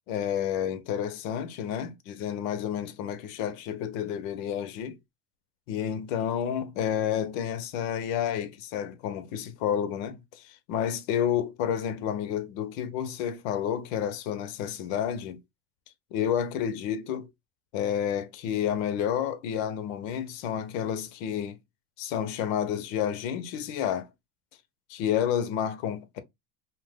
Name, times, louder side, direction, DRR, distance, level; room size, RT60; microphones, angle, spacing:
voice 1, 0.1-5.0 5.7-15.4 16.1-17.3 17.7-21.6 22.0-24.1 24.9-26.2, left 9 dB, 75° left, 0.8 m, -30 dB
2.9 x 2.2 x 3.4 m
supercardioid pair, 130°, 40 cm